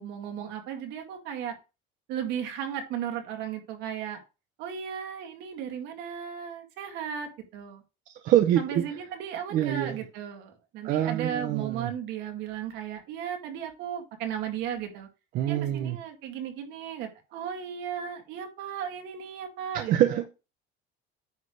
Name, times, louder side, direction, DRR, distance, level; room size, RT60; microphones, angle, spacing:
voice 1, 0.0-1.5 2.1-4.2 4.6-7.8 8.6-15.1 15.5-19.9, right 8 dB, 60° right, 2.1 m, -35 dB
voice 2, 8.2-8.8 9.5-10.0 10.8-11.9 15.3-16.0 19.9-20.3, right 12 dB, 45° right, 0.6 m, -25 dB
9.5 x 3.3 x 6.4 m
cardioid pair, 175°, 20 cm